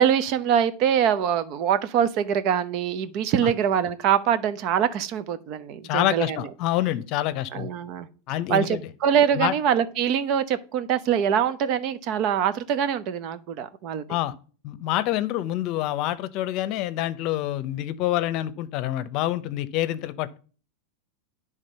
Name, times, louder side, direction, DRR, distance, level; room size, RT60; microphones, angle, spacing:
voice 1, 0.0-6.4 7.5-8.1 8.5-14.1, right 8 dB, 50° right, 0.8 m, -24 dB
voice 2, 5.8-7.7 8.3-8.8 9.3-9.5 14.1-14.3 14.6-20.4, left 13 dB, 50° left, 0.7 m, -27 dB
9.9 x 3.7 x 5.5 m
hypercardioid pair, 110°, 0 cm